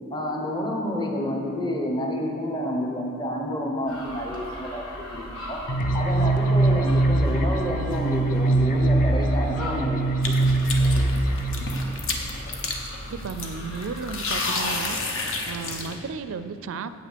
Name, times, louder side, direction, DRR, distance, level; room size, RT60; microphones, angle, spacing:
voice 1, 0.1-4.9 5.1-5.6 5.9-10.0 10.4-10.5 10.8-11.2, equal, 20° left, 1 dB, 0.9 m, -29 dB
sound 1, 3.9-14.3, equal, 75° left, 1.4 m, -39 dB
sound 2, 5.7-11.7, right 2 dB, 40° left, 0.5 m, -22 dB
sound 3, 10.2-16.0, left 3 dB, 60° left, 1.0 m, -31 dB
voice 2, 13.1-15.0 15.5-16.9, right 5 dB, 60° right, 12 dB, 0.4 m, -34 dB
8.4 x 6.0 x 6.7 m, 2.8 s
head